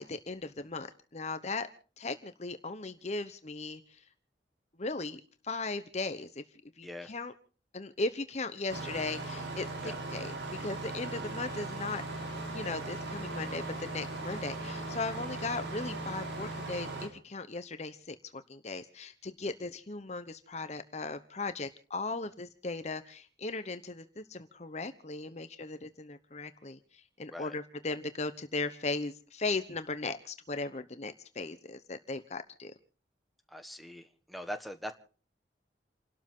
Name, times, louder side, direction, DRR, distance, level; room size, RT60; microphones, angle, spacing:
voice 1, 0.0-1.7 2.0-4.0 4.8-6.4 6.8-7.3 7.7-9.7 10.1-10.3 10.6-12.0 12.5-32.7, left 3 dB, 40° left, 10 dB, 1.0 m, -37 dB
Engine starting, 8.7-17.1, right 2 dB, 75° right, 4.4 m, -38 dB
voice 2, 33.5-34.9, equal, ahead, 6 dB, 1.4 m, -42 dB
29.5 x 12.5 x 3.7 m, 0.40 s
head